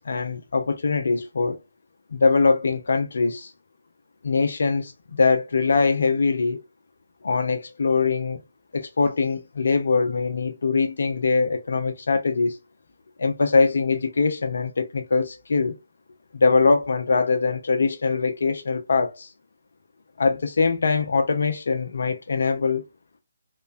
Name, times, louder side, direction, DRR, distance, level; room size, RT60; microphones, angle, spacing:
voice 1, 0.0-1.6 2.1-3.5 4.2-6.6 7.2-8.4 8.7-12.6 13.2-15.8 16.3-19.3 20.2-22.9, left 4 dB, 60° left, 0.4 m, -22 dB
3.0 x 2.1 x 2.4 m
figure-of-eight pair, 145°, 0 cm